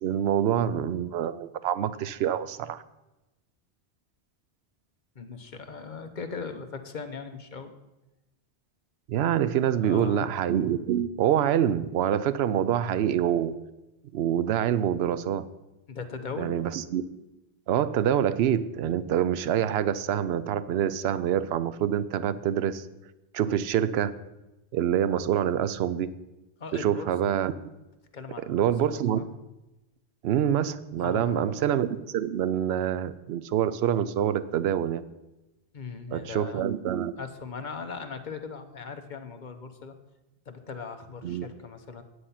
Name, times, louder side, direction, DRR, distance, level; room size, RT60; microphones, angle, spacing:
voice 1, 0.0-2.8 9.1-13.6 14.1-15.5 16.4-17.0 17.7-22.8 23.3-24.1 24.7-26.1 26.7-27.6 28.5-29.2 30.2-35.0 36.1-37.2 41.2-41.5, right 10 dB, 70° right, 15 dB, 0.8 m, -26 dB
voice 2, 5.1-7.7 9.7-10.2 15.9-16.6 26.6-27.3 28.1-29.3 31.0-31.6 35.7-36.7 37.2-39.9 40.5-42.0, left 5 dB, 45° left, 7 dB, 1.0 m, -39 dB
9.6 x 8.1 x 5.6 m, 0.99 s
omnidirectional pair, 1.2 m